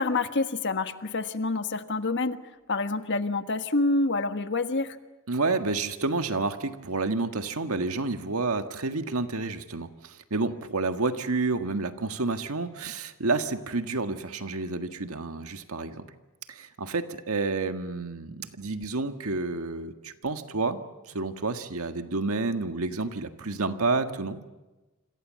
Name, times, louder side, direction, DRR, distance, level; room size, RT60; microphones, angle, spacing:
voice 1, 0.0-2.4 2.7-5.0, left 3 dB, 55° left, 9 dB, 1.4 m, -27 dB
voice 2, 5.3-16.1 16.5-24.4, right 3 dB, 80° right, 8 dB, 1.7 m, -30 dB
27.5 x 26.0 x 7.6 m, 1.1 s
head